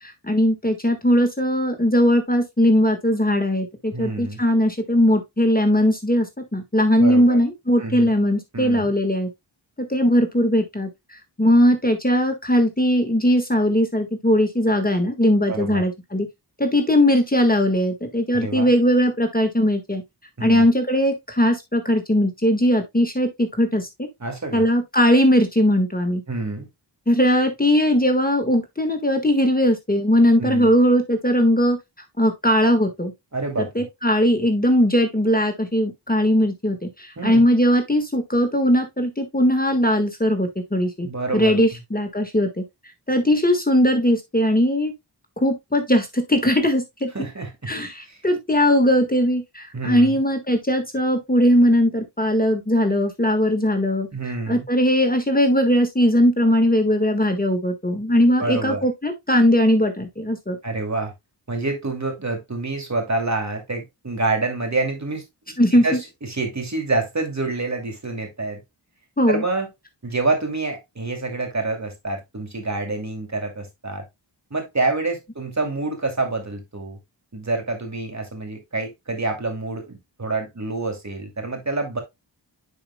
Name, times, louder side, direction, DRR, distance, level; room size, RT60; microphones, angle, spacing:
voice 1, 0.0-9.3 9.8-10.9 11.4-16.3 16.6-20.0 20.4-24.1 24.5-26.2 27.1-31.8 32.2-33.1 33.6-41.1 41.3-42.6 43.1-44.9 45.4-47.1 47.7-54.1 54.5-60.6 65.6-65.8 69.2-69.4, equal, 20° left, 1.6 m, -19 dB
voice 2, 3.9-4.4 7.0-7.4 7.8-8.1 8.5-8.9 15.5-15.8 18.3-18.7 20.4-20.7 24.2-24.6 26.3-26.7 30.4-30.7 33.3-33.9 37.2-37.4 41.0-41.8 47.1-47.7 48.1-48.2 49.7-50.2 54.1-54.6 58.3-58.8 60.6-61.1 61.5-68.6 69.3-69.7 70.0-74.1 74.5-77.0 77.3-82.0, right 3 dB, 40° right, 2.6 m, -27 dB
10.0 x 4.9 x 2.2 m
wide cardioid pair, 50°, 44 cm